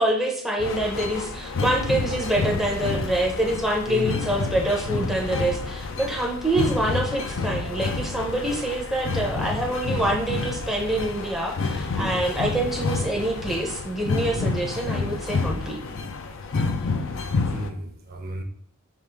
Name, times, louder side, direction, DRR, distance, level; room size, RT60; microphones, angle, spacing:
voice 1, 0.0-15.8, right 1 dB, ahead, -2 dB, 0.6 m, -26 dB
sound 1, 0.6-17.7, left 3 dB, 65° left, 0.5 m, -29 dB
voice 2, 3.8-4.2 12.0-12.2 14.3-14.6 17.3-18.4, right 1 dB, 45° right, 2 dB, 0.6 m, -34 dB
5.1 x 2.5 x 3.3 m, 0.64 s
head